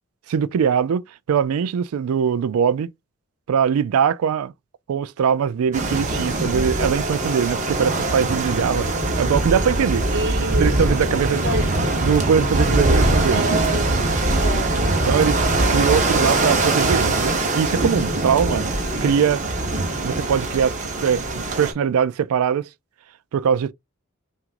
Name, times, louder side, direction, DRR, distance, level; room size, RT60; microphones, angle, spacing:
voice 1, 0.3-1.0 1.3-2.9 3.5-4.5 4.9-8.9 9.2-10.1 10.6-11.4 12.0-13.5 15.1-18.6 19.0-19.4 20.0-20.8 21.0-21.2 21.6-22.7 23.3-23.7, right 7 dB, 85° right, 0.3 m, -21 dB
sound 1, 5.7-21.7, right 2 dB, 35° right, 0.9 m, -22 dB
voice 2, 10.1-11.0 11.4-11.7 12.5-14.7 18.4-18.8, right 3 dB, 55° right, 1.2 m, -28 dB
5.8 x 2.5 x 2.5 m
head